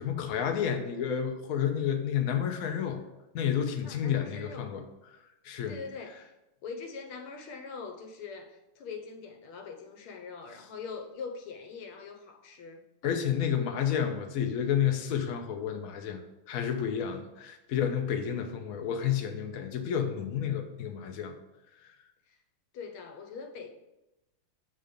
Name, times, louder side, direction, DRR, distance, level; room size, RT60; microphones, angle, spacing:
voice 1, 0.0-3.0 3.3-4.8 5.4-5.8 13.0-16.2 16.5-21.3, left 8 dB, 70° left, 5 dB, 0.8 m, -30 dB
voice 2, 3.8-4.7 5.7-6.3 6.6-12.8 22.3-22.4 22.7-23.7, left 5 dB, 85° left, 4 dB, 1.7 m, -42 dB
7.0 x 3.8 x 5.1 m, 0.96 s
omnidirectional pair, 2.4 m